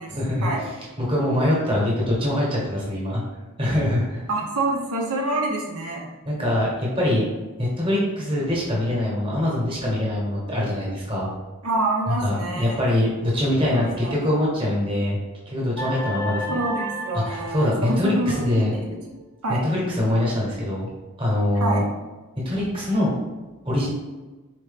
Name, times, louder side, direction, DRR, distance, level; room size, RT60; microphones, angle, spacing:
voice 1, 0.1-3.2 3.6-4.2 6.3-7.3 7.6-11.3 12.1-15.2 15.5-16.6 17.2-18.7 19.5-20.9 21.2-21.8 22.4-23.1 23.6-23.9, left 1 dB, 25° right, -5 dB, 1.1 m, -23 dB
voice 2, 4.3-6.1 11.6-12.8 13.7-14.2 16.5-19.2 19.4-19.6 21.6-21.9, right 2 dB, 90° right, -2 dB, 0.8 m, -27 dB
sound 1, 15.8-18.4, equal, 10° left, 0.4 m, -32 dB
4.2 x 3.0 x 3.5 m, 1.2 s
head